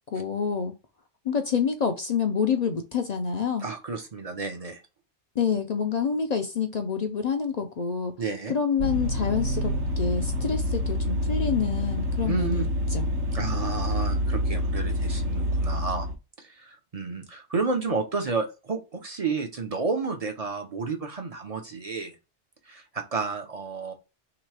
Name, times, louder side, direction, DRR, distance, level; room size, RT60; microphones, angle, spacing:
voice 1, 0.1-0.7 1.2-3.7 5.4-8.1 8.5-13.1, left 6 dB, 55° left, 0.4 m, -27 dB
voice 2, 3.6-4.8 8.2-8.6 12.3-12.7 13.3-16.1 16.4-22.1 22.7-23.9, right 4 dB, 40° right, 0.6 m, -31 dB
Vehicle, 8.8-16.1, equal, 75° right, 1.1 m, -27 dB
3.2 x 2.9 x 4.6 m
omnidirectional pair, 1.2 m